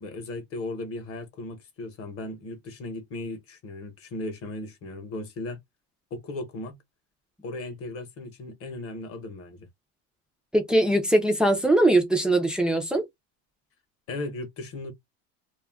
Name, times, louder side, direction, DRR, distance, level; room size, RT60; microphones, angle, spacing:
voice 1, 0.0-5.6 6.1-6.8 7.4-9.7 14.1-14.9, left 2 dB, 35° left, 0.8 m, -36 dB
voice 2, 10.5-13.0, right 1 dB, ahead, 0.4 m, -21 dB
2.3 x 2.1 x 3.3 m
cardioid pair, 145°, 38 cm